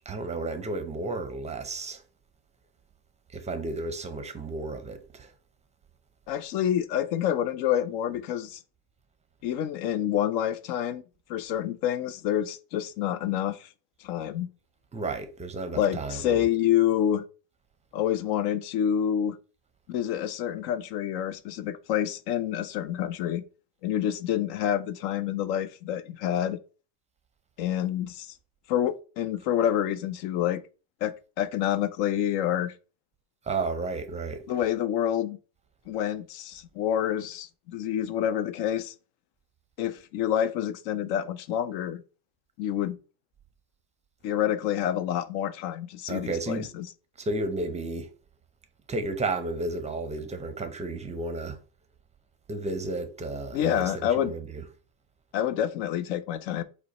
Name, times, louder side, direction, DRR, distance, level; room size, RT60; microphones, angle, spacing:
voice 1, 0.1-2.0 3.3-5.3 14.9-16.5 33.5-34.5 46.1-46.7 47.2-48.1 48.9-51.6 52.5-54.6, right 2 dB, 15° right, 0.6 m, -32 dB
voice 2, 6.3-8.6 9.4-11.0 11.3-13.7 14.0-14.5 15.7-17.2 17.9-19.4 19.9-23.4 23.8-26.6 27.6-28.3 28.7-30.6 31.0-32.7 34.5-35.4 35.9-38.9 39.8-42.0 42.6-43.0 44.2-46.9 53.5-54.3 55.3-56.6, left 10 dB, 60° left, 0.6 m, -28 dB
5.0 x 2.2 x 4.1 m
supercardioid pair, 110°, 47 cm